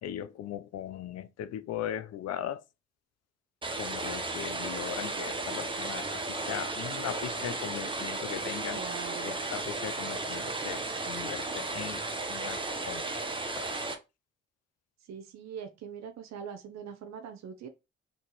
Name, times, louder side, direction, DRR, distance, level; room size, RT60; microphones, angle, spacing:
voice 1, 0.0-2.6 3.8-8.8 9.2-13.0 13.6-13.7, left 10 dB, 60° left, 0.5 m, -39 dB
sound 1, 3.6-13.9, right 2 dB, 15° right, 0.8 m, -34 dB
voice 2, 8.7-9.4 15.1-17.7, right 7 dB, 65° right, 0.7 m, -42 dB
2.9 x 2.7 x 3.8 m
hypercardioid pair, 50°, 30 cm